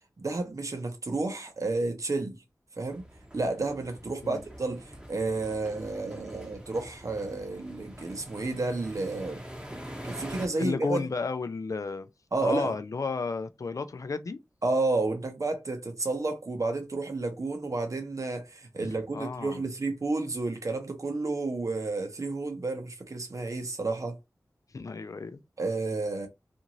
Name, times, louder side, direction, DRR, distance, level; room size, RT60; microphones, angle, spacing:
voice 1, 0.2-2.4 2.8-3.0 3.3-9.4 10.0-11.1 12.3-12.8 14.6-24.2 25.6-26.3, right 3 dB, 55° right, 0.8 m, -31 dB
sound 1, 2.9-10.5, equal, 15° right, 0.8 m, -44 dB
voice 2, 10.6-12.1 12.4-14.4 19.1-19.6 24.7-25.4, left 4 dB, 60° left, 0.4 m, -32 dB
2.6 x 2.5 x 2.9 m
wide cardioid pair, 65°, 6 cm